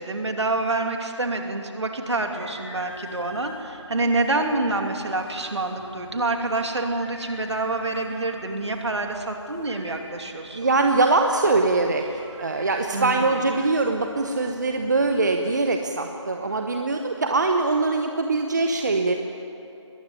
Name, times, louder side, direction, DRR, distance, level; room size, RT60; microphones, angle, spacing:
voice 1, 0.0-10.7 12.9-13.3, right 2 dB, 65° right, 4 dB, 2.8 m, -27 dB
sound 1, 2.0-15.4, right 1 dB, 15° right, 3.6 m, -46 dB
voice 2, 10.5-12.0 12.4-19.1, right 3 dB, 35° right, 4 dB, 1.0 m, -22 dB
22.0 x 15.0 x 9.2 m, 2.8 s
figure-of-eight pair, 165°, 16 cm